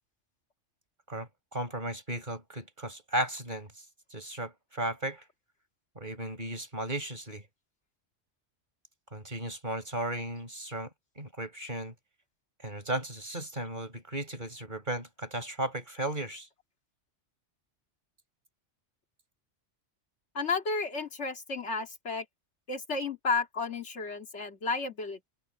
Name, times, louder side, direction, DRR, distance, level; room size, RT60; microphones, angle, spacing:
voice 1, 1.1-3.7 4.1-5.2 6.0-7.5 9.1-10.9 11.2-11.9 12.6-16.5, right 1 dB, 40° right, 5.8 m, -35 dB
voice 2, 20.3-22.3 22.7-25.3, left 4 dB, 70° left, 2.5 m, -32 dB
omnidirectional pair, 1.2 m